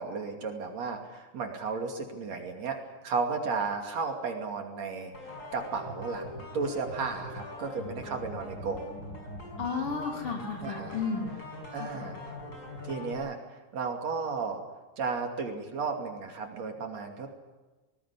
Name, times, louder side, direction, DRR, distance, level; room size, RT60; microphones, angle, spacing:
voice 1, 0.0-2.8 3.0-5.1 5.5-8.9 10.6-11.0 11.7-12.2 12.8-13.4 13.7-14.6 15.0-17.3, right 4 dB, 60° right, 3 dB, 3.8 m, -34 dB
sound 1, 5.1-13.1, left 1 dB, 30° left, 6.3 m, -42 dB
voice 2, 9.6-11.3 11.8-12.1, left 5 dB, 45° left, 2 dB, 3.8 m, -33 dB
20.0 x 19.0 x 10.0 m, 1.2 s
omnidirectional pair, 3.4 m